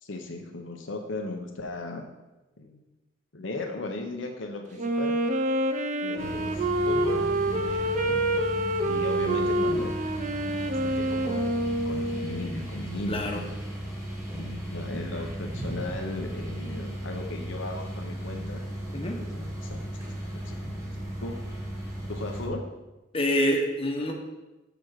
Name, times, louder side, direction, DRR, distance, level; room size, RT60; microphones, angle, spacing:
voice 1, 0.0-2.0 2.6-2.8 3.3-5.2 6.0-8.2 8.9-10.0 10.4-13.6 14.3-18.6 19.3-20.1 20.3-20.9 21.2-21.4 22.1-22.6, left 2 dB, 75° left, 3 dB, 0.9 m, -37 dB
Wind instrument woodwind instrument, 4.8-12.5, right 1 dB, 40° right, 0.6 m, -27 dB
sound 1, 6.2-22.5, right 1 dB, 15° right, 2.0 m, -36 dB
voice 2, 13.1-13.5 18.9-19.2 23.1-24.1, equal, 30° left, 1 dB, 1.1 m, -26 dB
6.8 x 4.5 x 6.4 m, 1.0 s
head